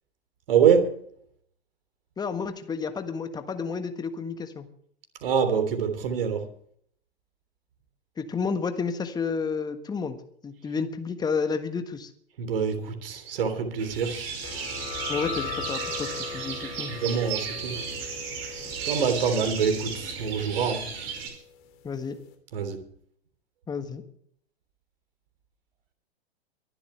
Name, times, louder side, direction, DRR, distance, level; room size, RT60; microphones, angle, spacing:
voice 1, 0.5-1.0 5.2-6.5 12.4-14.2 16.9-17.8 18.8-20.8 22.5-22.8, right 7 dB, 60° right, 7 dB, 3.4 m, -25 dB
voice 2, 2.2-4.7 8.2-10.2 10.4-12.1 15.1-16.9 21.8-22.1 23.7-24.0, left 5 dB, 10° left, 9 dB, 1.5 m, -31 dB
sound 1, 13.8-21.3, right 6 dB, 40° right, 5.3 m, -34 dB
sound 2, 14.4-21.7, left 8 dB, 40° left, 3.3 m, -40 dB
23.5 x 12.0 x 3.4 m, 0.65 s
figure-of-eight pair, 105°, 32 cm